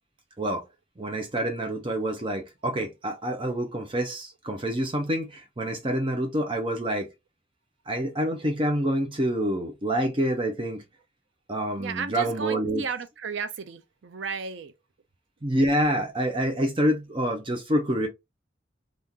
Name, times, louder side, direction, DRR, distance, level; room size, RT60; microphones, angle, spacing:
voice 1, 1.0-7.1 7.9-10.8 11.5-12.8 15.4-18.1, right 1 dB, 25° right, 0.6 m, -27 dB
voice 2, 11.8-14.7, right 5 dB, 70° right, 0.5 m, -34 dB
3.6 x 2.5 x 2.7 m
head